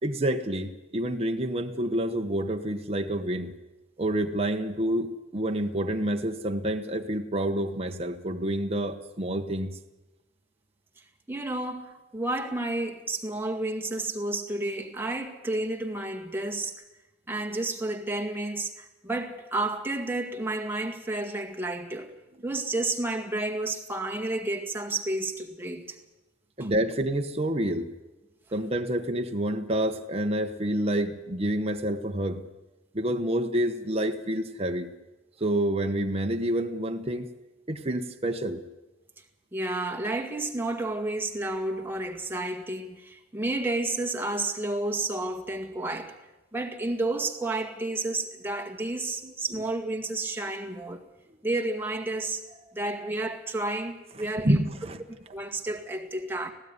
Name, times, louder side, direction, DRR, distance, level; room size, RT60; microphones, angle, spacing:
voice 1, 0.0-3.5 4.0-9.8 26.6-27.9 28.5-32.4 32.9-34.9 35.4-37.3 37.7-38.6 49.2-49.3 54.4-55.0, right 1 dB, 30° right, 1.2 m, -28 dB
voice 2, 11.3-16.7 17.3-22.1 22.4-26.0 26.6-26.7 39.5-46.1 46.5-51.0 51.4-52.4 52.7-54.6 55.1-56.5, right 2 dB, 10° right, 2.0 m, -31 dB
18.5 x 15.5 x 9.7 m
head